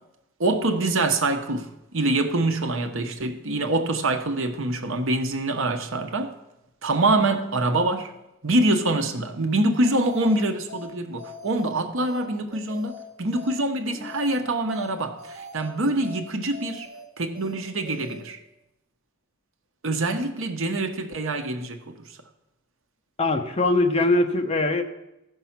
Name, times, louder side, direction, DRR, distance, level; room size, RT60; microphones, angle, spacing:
voice 1, 0.4-6.4 6.8-8.1 8.4-16.9 17.2-18.4 19.8-21.9, right 2 dB, 65° right, 1.0 m, -25 dB
sound 1, 9.8-10.4 10.7-10.9 11.2-11.7 12.0-12.2 12.5-13.0 13.3-13.5 13.8-14.4 14.7-14.9 15.2-15.7 16.0-16.2 16.5-17.0 17.3-17.5 17.8-18.2, left 2 dB, 35° right, 2.9 m, -42 dB
voice 2, 23.2-24.8, left 2 dB, 30° left, 1.0 m, -21 dB
13.5 x 5.6 x 5.8 m
head